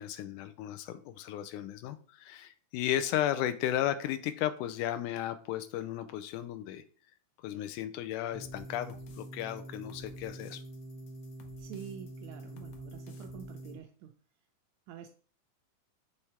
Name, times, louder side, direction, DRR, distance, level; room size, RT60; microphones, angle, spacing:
voice 1, 0.0-6.8 7.4-10.6, left 12 dB, 85° left, 10 dB, 2.1 m, -34 dB
sound 1, 8.3-13.8, right 1 dB, 65° right, 1.2 m, -46 dB
sound 2, 8.4-13.7, left 3 dB, 70° left, 1.5 m, -57 dB
voice 2, 11.6-14.1 14.9-15.1, right 9 dB, 80° right, 5 dB, 1.7 m, -47 dB
6.5 x 3.4 x 4.3 m, 0.42 s
omnidirectional pair, 3.6 m